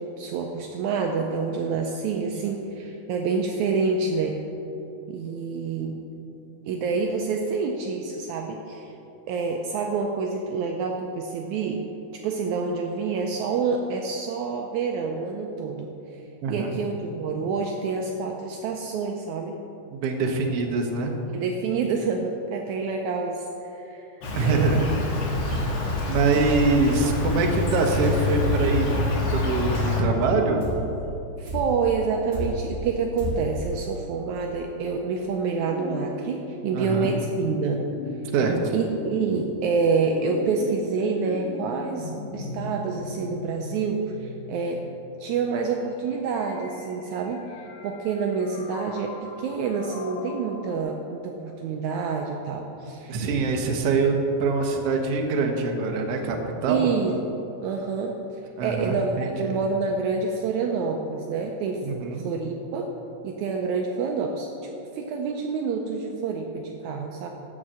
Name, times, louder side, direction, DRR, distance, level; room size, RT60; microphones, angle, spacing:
voice 1, 0.0-4.4 5.1-6.0 6.7-8.9 9.3-11.8 12.1-16.2 16.5-19.6 21.3-24.8 25.5-25.7 31.4-37.9 38.2-38.3 38.7-44.8 45.2-53.2 56.7-57.1 57.6-58.1 58.6-62.9 63.2-64.5 64.9-67.3, right 5 dB, 80° right, 2 dB, 1.8 m, -27 dB
voice 2, 16.4-16.8 19.9-21.2 24.3-24.9 25.5-25.7 26.1-30.6 36.7-37.1 38.3-38.6 53.1-56.9 58.6-59.5 61.8-62.3, right 4 dB, 60° right, 2 dB, 1.7 m, -24 dB
Insect, 24.2-30.0, left 3 dB, 55° left, 2.4 m, -26 dB
sound 1, 25.5-25.9 26.3-26.7 27.2-27.6 28.0-28.3 28.9-29.3 29.7-30.1 30.6-31.0 31.5-31.9 32.3-32.7 33.2-33.6, right 1 dB, 30° right, 2.2 m, -33 dB
sound 2, 34.6-50.8, left 4 dB, 80° left, 2.4 m, -39 dB
9.1 x 7.3 x 7.5 m, 3.0 s
omnidirectional pair, 3.8 m